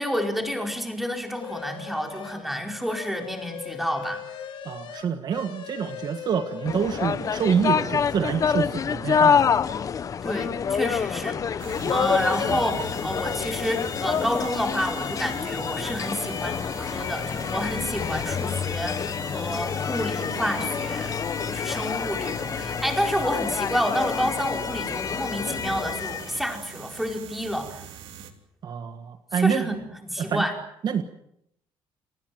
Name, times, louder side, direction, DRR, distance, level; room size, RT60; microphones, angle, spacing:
voice 1, 0.0-4.2 10.2-21.2 21.4-27.8 29.4-30.5, equal, ahead, 3 dB, 4.8 m, -29 dB
sound 1, 1.4-2.4 2.8-7.6, left 8 dB, 60° left, 2.9 m, -39 dB
voice 2, 4.6-9.5 28.6-29.8 30.2-30.4 30.8-31.0, right 7 dB, 45° right, 9 dB, 1.5 m, -27 dB
sound 2, 6.7-26.5, left 7 dB, 35° left, 0.9 m, -27 dB
sound 3, 11.6-28.3, right 8 dB, 75° right, 3.3 m, -42 dB
30.0 x 19.5 x 7.7 m, 0.76 s
cardioid pair, 130°, 9 cm